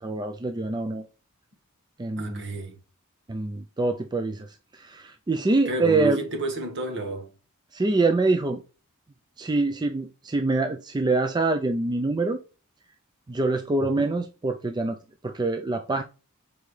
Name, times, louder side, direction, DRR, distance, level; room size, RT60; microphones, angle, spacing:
voice 1, 0.0-1.1 2.0-2.5 3.3-6.2 7.7-8.6 9.4-12.4 13.3-15.0 15.2-16.0, right 3 dB, 20° right, 0.4 m, -25 dB
voice 2, 2.2-2.7 5.7-7.3 13.8-14.1, right 2 dB, 55° right, 1.5 m, -30 dB
7.2 x 4.6 x 3.2 m
head